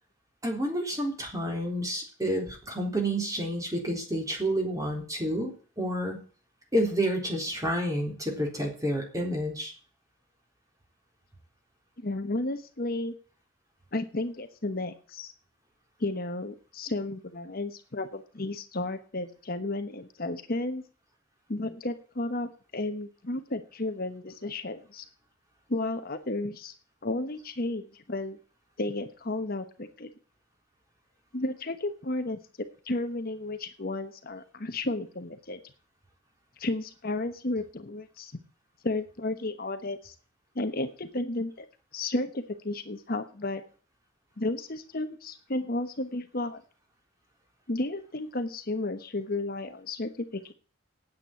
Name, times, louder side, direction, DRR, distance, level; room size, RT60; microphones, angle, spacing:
voice 1, 0.4-6.2 6.7-9.7, equal, 15° right, 2 dB, 3.7 m, -29 dB
voice 2, 12.0-13.1 13.9-15.3 16.0-20.8 21.5-25.0 25.7-26.7 27.0-28.4 28.8-30.1 31.3-35.6 36.6-38.4 38.8-40.1 40.5-41.6 41.9-43.6 44.4-46.6 47.7-50.5, left 2 dB, 50° left, 8 dB, 1.2 m, -33 dB
9.1 x 9.0 x 8.9 m, 0.40 s
head